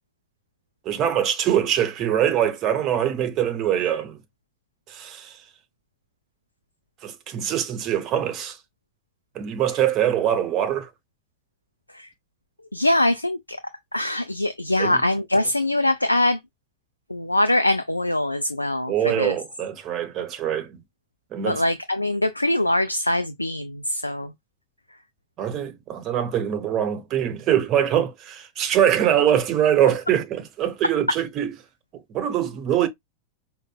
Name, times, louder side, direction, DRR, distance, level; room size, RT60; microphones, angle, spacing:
voice 1, 0.9-4.2 4.9-5.4 7.0-8.6 9.3-10.9 14.8-15.0 18.9-20.8 21.3-21.6 25.4-31.5 32.1-32.9, right 10 dB, 35° right, 0.7 m, -23 dB
voice 2, 12.7-13.6 13.9-16.4 17.1-19.3 21.5-24.3, left 1 dB, 85° left, 0.3 m, -23 dB
5.0 x 2.2 x 2.2 m
figure-of-eight pair, 90°, 0 cm